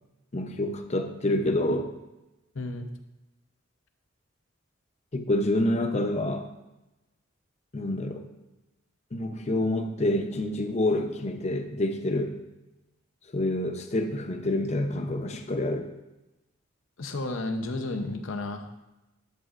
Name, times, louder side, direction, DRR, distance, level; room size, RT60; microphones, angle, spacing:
voice 1, 0.3-1.9 5.1-6.5 7.7-8.3 9.1-12.4 13.3-15.9, left 1 dB, 35° left, 6 dB, 0.7 m, -27 dB
voice 2, 2.5-2.9 17.0-18.7, left 2 dB, 80° left, 6 dB, 0.8 m, -32 dB
11.0 x 7.3 x 2.5 m, 1.0 s
head